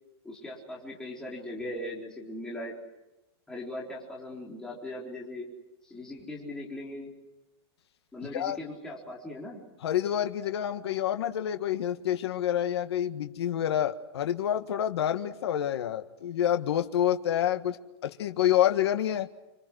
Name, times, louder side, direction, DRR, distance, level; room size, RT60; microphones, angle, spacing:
voice 1, 0.2-2.8 3.5-5.5 5.8-7.1 8.1-9.6, left 1 dB, 5° left, -4 dB, 4.3 m, -39 dB
voice 2, 9.8-17.8 18.0-19.3, left 11 dB, 80° left, 7 dB, 1.6 m, -28 dB
28.5 x 27.0 x 6.4 m, 0.97 s
supercardioid pair, 180°, 14 cm